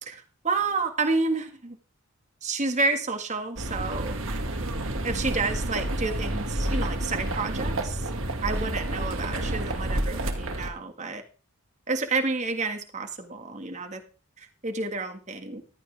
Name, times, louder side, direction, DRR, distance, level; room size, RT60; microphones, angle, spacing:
voice 1, 0.0-1.8 2.4-4.2 5.0-8.1 8.4-11.2 11.9-14.0 14.4-15.6, right 3 dB, 30° right, 5 dB, 1.7 m, -30 dB
sound 1, 3.6-10.7, right 1 dB, 60° right, 2.1 m, -29 dB
15.0 x 12.0 x 3.4 m, 0.37 s
head